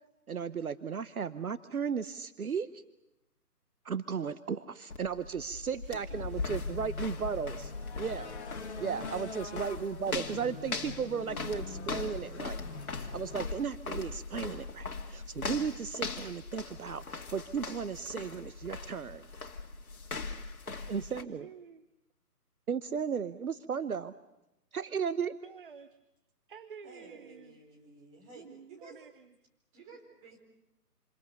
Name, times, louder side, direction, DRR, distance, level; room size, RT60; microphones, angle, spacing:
voice 1, 0.3-2.8 3.8-8.3 8.8-12.6 12.9-19.3 20.9-21.5 22.7-24.1 24.7-25.3, right 6 dB, 65° right, 14 dB, 1.0 m, -35 dB
sound 1, 4.9-21.2, left 4 dB, 60° left, 2.3 m, -40 dB
voice 2, 5.8-6.6 8.7-9.6 20.7-21.9 25.3-26.0 26.5-27.6 28.3-29.3, right 6 dB, 35° right, 11 dB, 0.9 m, -51 dB
sound 2, 6.4-13.5, left 4 dB, 45° left, 1.9 m, -45 dB
voice 3, 26.8-29.0 29.7-30.4, right 3 dB, 15° right, -1 dB, 4.6 m, -53 dB
27.5 x 27.5 x 6.9 m, 0.92 s
figure-of-eight pair, 150°, 47 cm